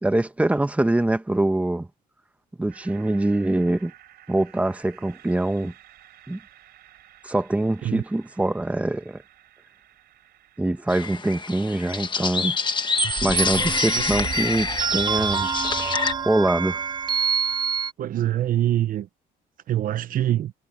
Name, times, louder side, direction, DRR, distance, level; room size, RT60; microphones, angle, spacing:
voice 1, 0.0-1.9 2.6-3.9 4.3-5.7 6.3-6.4 7.2-9.2 10.6-12.6 13.2-15.5 16.2-16.8, right 2 dB, 10° right, 1.3 m, -24 dB
sound 1, 2.7-12.7, right 12 dB, 70° right, 4.2 m, -53 dB
sound 2, 10.9-16.1, left 5 dB, 30° left, 1.5 m, -27 dB
sound 3, 13.0-17.9, right 7 dB, 25° right, 0.4 m, -26 dB
voice 2, 18.0-19.1 19.7-20.5, right 12 dB, 55° right, 0.8 m, -24 dB
cardioid pair, 110°, 17 cm